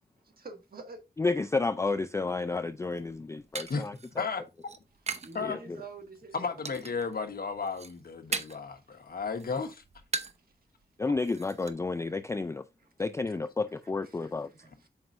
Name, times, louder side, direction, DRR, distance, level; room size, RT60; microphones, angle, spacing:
voice 1, 0.2-1.0 5.2-6.6 8.9-9.0 12.8-12.9 14.0-14.9, right 4 dB, 60° right, 1.6 m, -48 dB
voice 2, 1.2-4.2 5.4-5.6 11.0-12.6 13.0-14.5, left 3 dB, 15° left, 0.3 m, -31 dB
sound 1, 2.8-5.4 5.7-6.2 6.6-7.1 7.5-8.7 9.1-10.5 10.8-10.9 11.2-11.7, right 4 dB, 40° right, 0.8 m, -39 dB
voice 3, 6.3-9.8, left 5 dB, 60° left, 1.2 m, -33 dB
7.9 x 5.1 x 2.5 m
wide cardioid pair, 105°, 18 cm